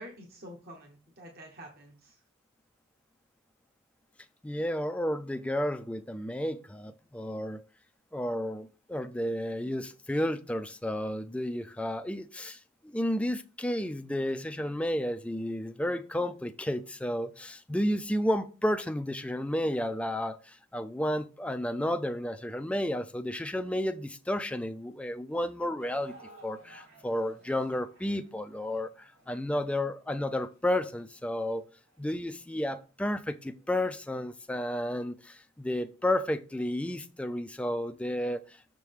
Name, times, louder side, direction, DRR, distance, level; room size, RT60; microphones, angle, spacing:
voice 1, 0.0-2.2, right 1 dB, 50° right, 1.2 m, -48 dB
voice 2, 4.4-7.6 8.1-26.1 26.4-31.6 32.0-38.6, left 1 dB, 5° left, 0.4 m, -32 dB
sound 1, 25.8-32.0 32.7-32.8 33.5-33.7, right 2 dB, 75° right, 3.1 m, -56 dB
6.6 x 6.3 x 3.5 m
head